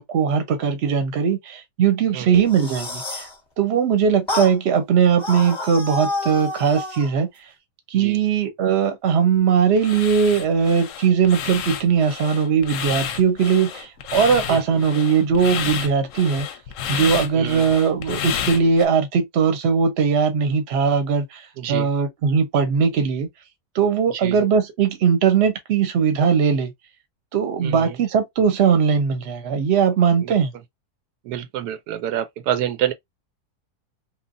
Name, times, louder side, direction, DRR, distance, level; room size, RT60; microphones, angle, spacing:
voice 1, 0.0-3.3 3.6-7.3 7.9-16.5 16.9-23.3 23.7-26.7 27.3-30.5, right 6 dB, 50° right, 0.9 m, -19 dB
sound 1, 2.3-3.3 4.3-4.6 5.2-7.1, left 2 dB, 20° left, 0.8 m, -29 dB
sound 2, 9.8-18.9, left 9 dB, 65° left, 0.8 m, -30 dB
voice 2, 17.3-17.7 21.6-21.9 24.1-24.4 27.6-28.0 30.2-30.4 31.2-32.9, right 11 dB, 85° right, 1.1 m, -27 dB
3.1 x 2.4 x 2.5 m
omnidirectional pair, 1.7 m